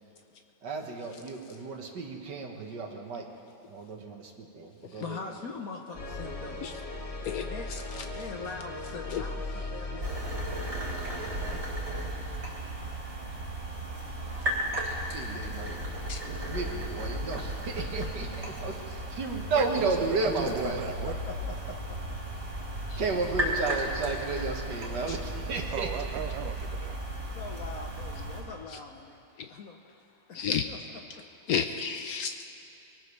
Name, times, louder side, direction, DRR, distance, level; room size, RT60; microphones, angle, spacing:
voice 1, 0.6-3.3 3.7-5.3 15.1-15.8 16.2-20.8 22.9-25.9, right 3 dB, 60° right, 2 dB, 1.9 m, -33 dB
voice 2, 5.0-6.6 7.5-7.7 8.1-10.6 20.6-22.2 27.3-29.2 29.5-29.8 30.3-30.6 31.1-31.2, left 4 dB, 60° left, 3 dB, 1.0 m, -42 dB
sound 1, 5.9-11.6, left 2 dB, 25° left, 0.8 m, -38 dB
voice 3, 7.2-8.3 9.0-9.2 16.1-16.2 22.9-23.0 25.1-25.2 28.7-28.8 29.4-29.5 30.3-30.7 31.5-32.4, left 7 dB, 85° left, 7 dB, 0.8 m, -33 dB
sound 2, 10.0-28.4, right 1 dB, 35° right, 3.4 m, -35 dB
voice 4, 19.5-21.2 25.7-27.0, right 11 dB, 75° right, 11 dB, 1.3 m, -37 dB
23.0 x 18.5 x 3.3 m, 2.7 s
omnidirectional pair, 2.2 m